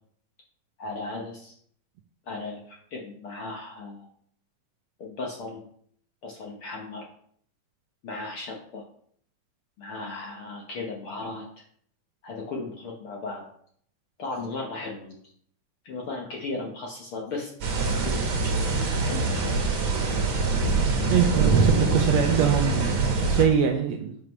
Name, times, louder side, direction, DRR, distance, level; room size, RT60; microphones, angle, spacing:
voice 1, 0.8-1.5 2.3-4.1 5.0-5.7 6.2-7.0 8.0-8.8 9.8-11.5 12.2-13.5 14.2-15.2 15.8-17.5 18.0-18.6 19.0-19.7, left 3 dB, 65° left, -1 dB, 1.4 m, -36 dB
sound 1, 17.6-23.4, right 3 dB, 55° right, 1.6 m, -24 dB
voice 2, 21.1-24.2, right 8 dB, 80° right, 4 dB, 1.6 m, -24 dB
9.2 x 5.9 x 3.1 m, 0.62 s
omnidirectional pair, 3.6 m